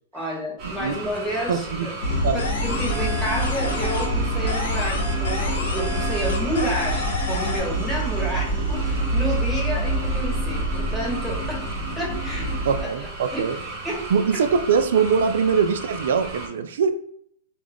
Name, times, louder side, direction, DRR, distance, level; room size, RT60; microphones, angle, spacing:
voice 1, 0.1-2.0 2.3-11.6 12.0-13.4 13.8-14.0, equal, ahead, -6 dB, 1.2 m, -30 dB
sound 1, 0.6-16.5, right 2 dB, 40° right, 0.9 m, -36 dB
voice 2, 0.6-0.9 1.5-1.9 2.2-2.4 12.6-13.6 14.1-17.0, right 6 dB, 75° right, 9 dB, 0.3 m, -22 dB
sound 2, 2.0-12.8, right 1 dB, 60° left, 1.0 m, -26 dB
sound 3, 2.4-4.2 4.5-7.6, left 2 dB, 85° left, 0.7 m, -31 dB
2.4 x 2.2 x 3.4 m, 0.67 s
hypercardioid pair, 125°, 0 cm